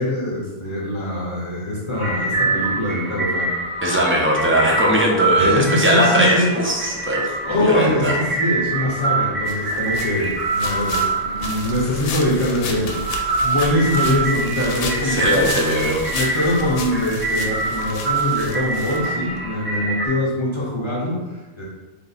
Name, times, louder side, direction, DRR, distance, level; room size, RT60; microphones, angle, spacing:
voice 1, 0.0-3.5 5.4-6.5 7.4-15.6 16.1-21.6, left 1 dB, 30° left, -6 dB, 0.7 m, -23 dB
sound 1, 1.9-20.1, right 3 dB, 45° right, 1.6 m, -25 dB
voice 2, 3.8-7.3 7.6-8.1 15.0-16.0, equal, 20° right, -3 dB, 0.4 m, -19 dB
sound 2, 9.5-19.5, left 4 dB, 90° left, 0.9 m, -32 dB
3.3 x 2.6 x 4.0 m, 1.1 s
omnidirectional pair, 1.2 m